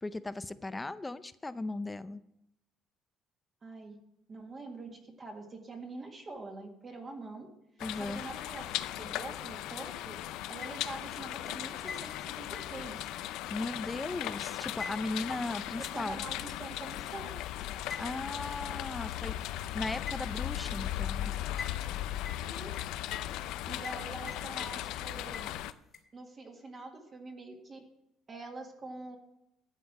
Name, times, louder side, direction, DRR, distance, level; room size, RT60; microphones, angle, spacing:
voice 1, 0.0-2.2 7.8-8.2 13.5-16.2 18.0-19.3 19.7-21.3, left 2 dB, 10° left, 13 dB, 0.5 m, -37 dB
voice 2, 3.6-4.0 4.3-7.5 8.0-8.7 9.0-10.2 10.5-13.1 15.9-17.3 22.4-22.7 23.7-25.5 26.1-27.8 28.3-29.2, right 2 dB, 25° right, 2 dB, 1.8 m, -45 dB
sound 1, 7.8-25.7, left 13 dB, 80° left, 0.5 m, -37 dB
sound 2, 10.6-11.1 11.5-14.3 14.8-16.1 16.5-16.6 17.9-18.1 18.5-18.6 19.1-19.2 20.1-20.6 21.6-22.0 22.2-23.2 23.8-24.0 24.3-25.0 25.3-26.0, left 5 dB, 35° left, 1.8 m, -45 dB
12.0 x 8.3 x 4.9 m, 0.83 s
cardioid pair, 155°, 0 cm